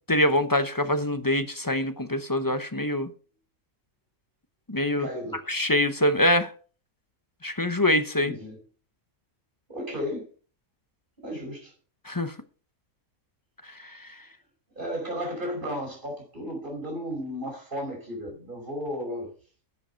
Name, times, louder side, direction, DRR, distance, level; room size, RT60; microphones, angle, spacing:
voice 1, 0.1-3.1 4.7-5.1 5.5-6.5 7.4-8.3 12.1-12.3, left 1 dB, 20° left, 0.7 m, -24 dB
voice 2, 5.0-5.4 8.2-8.6 9.7-10.3 11.2-11.7 14.8-19.3, equal, 35° right, 5.6 m, -34 dB
10.5 x 7.8 x 5.6 m
omnidirectional pair, 1.4 m